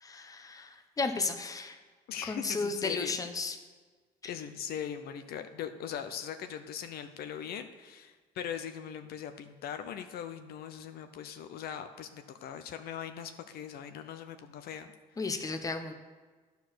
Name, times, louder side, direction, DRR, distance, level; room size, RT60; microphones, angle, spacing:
voice 1, 0.0-1.8 2.2-3.6 15.2-15.9, left 4 dB, 20° left, 7 dB, 0.8 m, -34 dB
voice 2, 2.1-3.2 4.2-14.9, left 9 dB, 65° left, 8 dB, 0.6 m, -40 dB
10.5 x 4.7 x 6.2 m, 1.4 s
cardioid pair, 110°, 17 cm